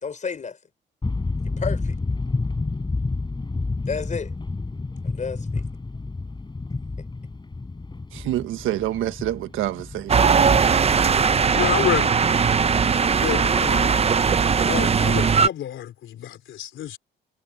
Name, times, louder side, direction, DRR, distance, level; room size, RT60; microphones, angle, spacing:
voice 1, 0.0-0.6 1.6-2.0 3.9-4.3 5.0-5.7, left 5 dB, 40° left, 4.4 m, -31 dB
sound 1, 1.0-12.5, left 3 dB, 20° left, 7.0 m, -30 dB
voice 2, 8.1-10.3, right 13 dB, 90° right, 1.4 m, -27 dB
sound 2, 10.1-15.5, right 6 dB, 30° right, 0.7 m, -19 dB
voice 3, 11.5-12.1 13.2-14.1 14.5-17.0, left 11 dB, 75° left, 3.7 m, -28 dB
cardioid pair, 90°, 20 cm